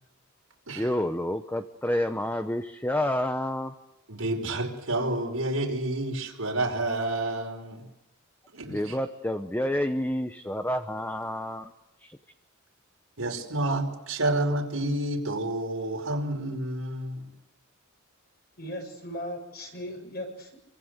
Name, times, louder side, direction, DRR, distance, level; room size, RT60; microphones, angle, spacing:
voice 1, 0.8-3.7 8.7-11.7 12.0-12.1, left 1 dB, 10° left, 1.0 m, -29 dB
voice 2, 4.1-7.9 8.5-9.0 13.2-17.3, right 1 dB, 80° right, 5.1 m, -29 dB
voice 3, 18.6-20.6, equal, 50° left, 7.5 m, -37 dB
28.0 x 25.0 x 8.2 m
head